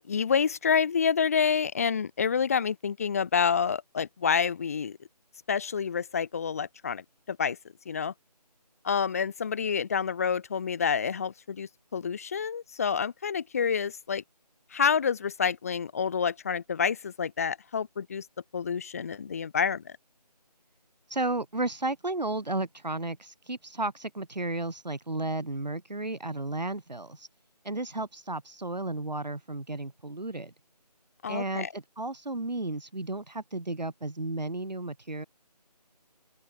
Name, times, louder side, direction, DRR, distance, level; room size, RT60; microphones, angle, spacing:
voice 1, 0.0-5.0 5.5-7.6 7.9-8.1 8.8-14.2 14.7-18.3 18.5-19.9 31.2-31.7, left 6 dB, 20° left, 1.9 m, -28 dB
voice 2, 21.1-27.3 27.6-30.5 31.3-35.3, right 2 dB, 85° right, 4.9 m, -33 dB
open air
figure-of-eight pair, 170°, 21 cm